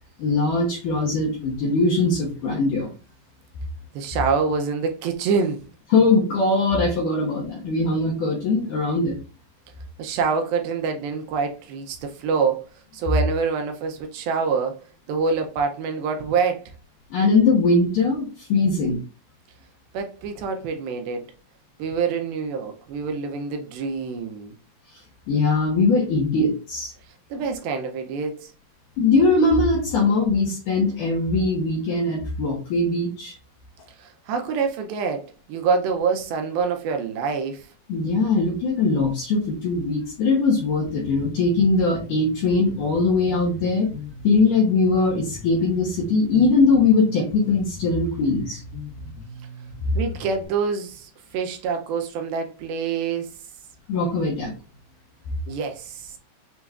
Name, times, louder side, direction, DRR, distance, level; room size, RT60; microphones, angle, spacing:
voice 1, 0.2-2.9 5.9-9.2 17.1-19.0 25.3-26.9 29.0-33.4 37.9-43.9 44.2-48.6 53.9-54.5, left 3 dB, 75° left, 1.9 m, -21 dB
voice 2, 3.9-5.7 10.0-12.7 12.9-14.8 15.1-16.6 19.9-21.3 21.8-24.5 27.3-28.5 34.0-37.7 50.0-53.4 55.5-56.2, right 5 dB, 80° right, 2.2 m, -26 dB
Bass guitar, 40.9-50.5, left 2 dB, 55° left, 3.4 m, -40 dB
6.8 x 3.0 x 2.4 m
omnidirectional pair, 4.8 m